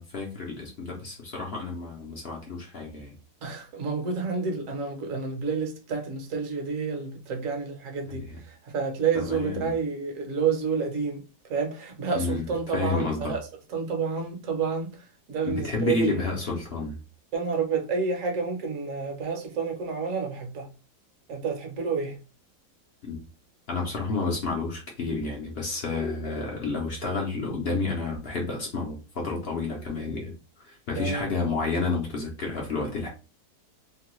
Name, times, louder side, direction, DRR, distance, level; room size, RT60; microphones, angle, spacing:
voice 1, 0.0-3.1 8.1-8.2 9.1-9.7 12.1-12.5 12.7-13.3 15.4-17.0 23.0-23.2 23.7-30.3 30.6-33.1, left 3 dB, 55° left, 0.6 m, -30 dB
voice 2, 3.4-11.2 11.5-16.3 17.3-20.7 21.3-22.2 31.0-31.3, right 5 dB, 60° right, 1.1 m, -29 dB
3.0 x 2.2 x 3.0 m
omnidirectional pair, 1.7 m